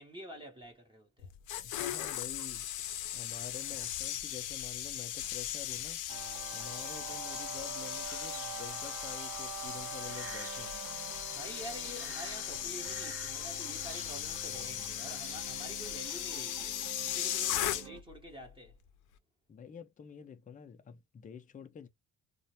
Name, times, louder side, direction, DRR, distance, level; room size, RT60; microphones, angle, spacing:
voice 1, 0.0-1.3 11.3-18.8, equal, 15° right, 0.8 m, -48 dB
sound 1, 1.2-18.2 18.4-18.7, left 12 dB, 85° left, 0.5 m, -38 dB
voice 2, 1.6-6.0 6.5-10.8 19.5-21.9, left 8 dB, 25° left, 0.5 m, -48 dB
sound 2, 6.1-18.0, right 8 dB, 80° right, 0.6 m, -46 dB
sound 3, 8.0-15.7, right 5 dB, 50° right, 0.9 m, -52 dB
2.4 x 2.1 x 2.8 m
cardioid pair, 90°, 30 cm